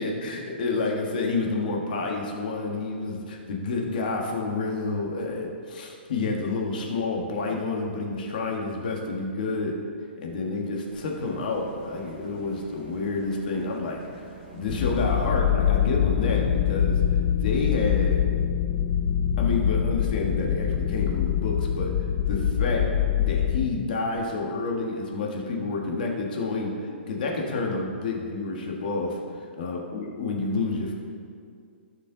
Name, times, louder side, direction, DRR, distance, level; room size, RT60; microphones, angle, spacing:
voice 1, 0.0-9.8 10.2-14.3 14.5-17.0 17.4-18.2 19.4-29.2 29.6-30.9, left 3 dB, 50° left, 0 dB, 1.5 m, -29 dB
sound 1, 10.9-15.3, right 3 dB, 10° right, 2.6 m, -47 dB
sound 2, 14.7-23.7, left 10 dB, 25° left, 0.4 m, -24 dB
16.0 x 5.5 x 3.9 m, 2.3 s
hypercardioid pair, 170°, 6 cm